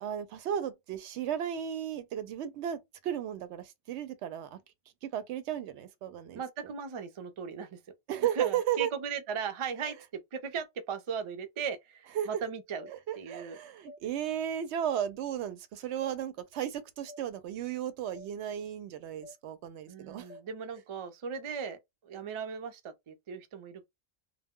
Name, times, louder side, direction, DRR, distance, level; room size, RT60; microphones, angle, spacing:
voice 1, 0.0-4.6 5.0-6.4 8.1-8.9 9.8-9.9 12.2-12.4 12.9-20.3, right 10 dB, 90° right, 0.9 m, -34 dB
voice 2, 6.3-7.8 8.2-10.0 10.3-12.9 13.2-13.6 19.9-23.8, right 6 dB, 50° right, 0.4 m, -38 dB
sound 1, 12.8-13.0 13.9-14.0 14.9-15.1 16.0-16.2 17.1-17.2 18.2-18.3 19.2-19.4 20.3-20.5, left 3 dB, 90° left, 0.9 m, -49 dB
2.2 x 2.0 x 3.5 m
omnidirectional pair, 1.1 m